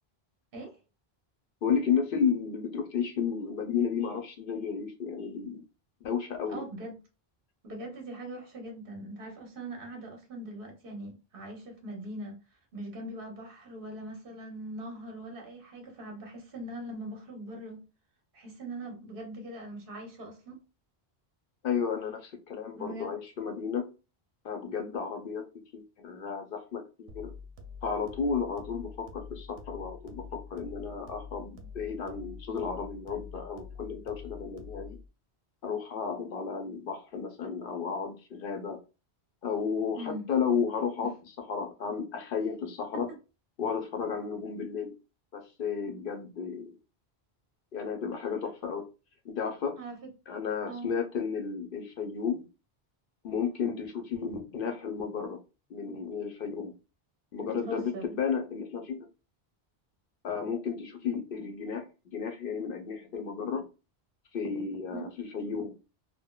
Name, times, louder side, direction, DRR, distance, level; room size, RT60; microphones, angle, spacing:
voice 1, 1.6-5.6 6.0-6.6 21.6-23.9 24.4-25.5 25.7-27.3 27.8-35.0 35.6-38.8 39.4-41.1 41.5-43.1 43.6-44.9 45.3-46.8 47.7-48.9 49.2-49.8 50.3-52.4 53.2-55.4 55.7-56.7 57.3-59.1 60.2-63.7 64.3-65.8, left 6 dB, 65° left, 0.7 m, -33 dB
voice 2, 6.5-7.0 7.6-12.4 12.7-17.8 18.3-20.6 22.7-23.1 39.9-40.3 42.9-43.2 49.8-50.0 50.7-50.9 57.4-58.1 64.9-65.1, right 1 dB, 60° right, 1.1 m, -41 dB
sound 1, 27.1-35.1, left 5 dB, 85° right, 0.8 m, -46 dB
3.5 x 2.1 x 2.2 m
omnidirectional pair, 1.1 m